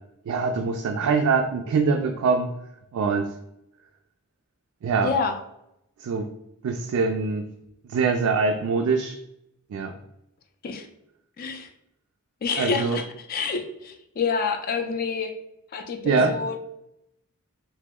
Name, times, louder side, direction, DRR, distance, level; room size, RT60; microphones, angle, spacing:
voice 1, 0.3-2.5 2.9-3.3 4.8-5.1 6.0-6.3 6.6-7.5 7.9-9.2 9.7-9.9 12.6-13.0 16.0-16.3, right 4 dB, 70° right, 3 dB, 0.3 m, -23 dB
voice 2, 5.0-5.3 10.6-10.9 11.4-11.7 12.4-15.3 15.7-16.6, left 5 dB, 45° left, 6 dB, 0.4 m, -28 dB
2.9 x 2.0 x 3.5 m, 0.82 s
head